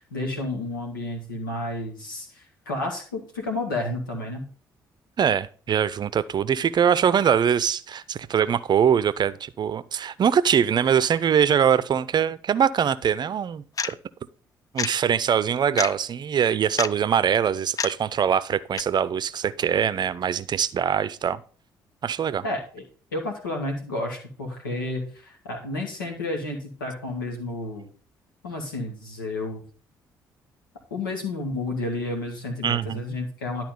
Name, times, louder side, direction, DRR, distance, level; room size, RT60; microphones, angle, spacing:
voice 1, 0.0-4.5 22.4-22.8 23.1-27.9 28.4-29.6 30.9-33.7, left 2 dB, 85° left, 2.1 m, -31 dB
voice 2, 5.2-14.0 14.7-21.4 22.0-22.4 32.6-33.0, right 8 dB, 45° right, 0.6 m, -23 dB
sound 1, 12.9-13.0 13.8-13.9 14.8-14.9 15.8-15.9 16.8-16.9 17.8-17.9 18.8-18.9, left 6 dB, 35° left, 0.5 m, -27 dB
11.5 x 4.3 x 5.6 m
figure-of-eight pair, 45°, 11 cm